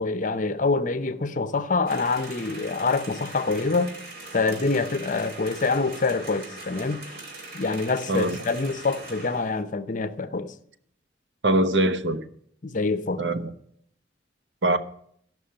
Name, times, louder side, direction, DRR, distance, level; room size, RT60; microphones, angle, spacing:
voice 1, 0.0-3.9 4.3-7.0 7.5-10.5 12.6-13.2, left 3 dB, 45° left, 0.7 m, -26 dB
sound 1, 1.9-9.6, right 2 dB, 55° right, 2.7 m, -41 dB
voice 2, 11.4-12.3 13.2-13.5 14.6-14.8, right 1 dB, 70° right, 1.0 m, -22 dB
13.0 x 6.1 x 8.7 m
head